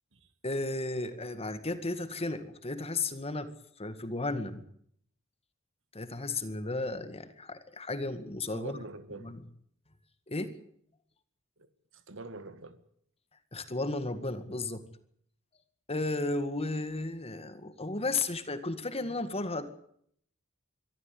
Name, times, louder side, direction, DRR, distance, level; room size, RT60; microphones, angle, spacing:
voice 1, 0.4-3.5 3.8-4.6 5.9-8.8 9.2-9.4 10.3-10.6 13.5-14.9 15.9-19.7, left 2 dB, 30° left, 2.0 m, -34 dB
voice 2, 8.5-9.3 11.6-12.8, right 3 dB, 65° right, 2.1 m, -45 dB
24.0 x 14.5 x 9.2 m
head